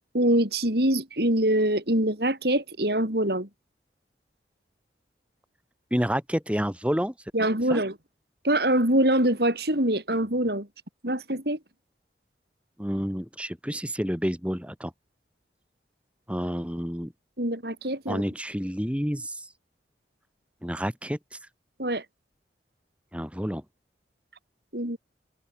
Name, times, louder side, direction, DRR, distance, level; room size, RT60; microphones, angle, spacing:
voice 1, 0.1-3.5 7.3-8.0 8.4-10.7 11.0-11.6 17.4-18.2 21.8-22.0 24.7-25.0, right 1 dB, 60° right, 6.1 m, -24 dB
voice 2, 5.9-7.1 7.7-7.8 12.8-14.9 16.3-17.1 18.1-19.4 20.6-21.2 23.1-23.6, equal, 5° right, 7.3 m, -29 dB
head